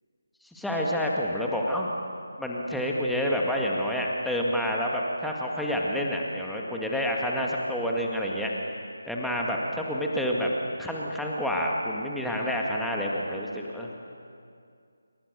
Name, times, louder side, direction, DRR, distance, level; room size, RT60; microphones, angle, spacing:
voice 1, 0.4-1.9 2.4-8.5 9.0-10.5 10.8-13.9, equal, ahead, -3 dB, 2.0 m, -28 dB
28.0 x 25.0 x 6.8 m, 2.3 s
figure-of-eight pair, 155°, 0 cm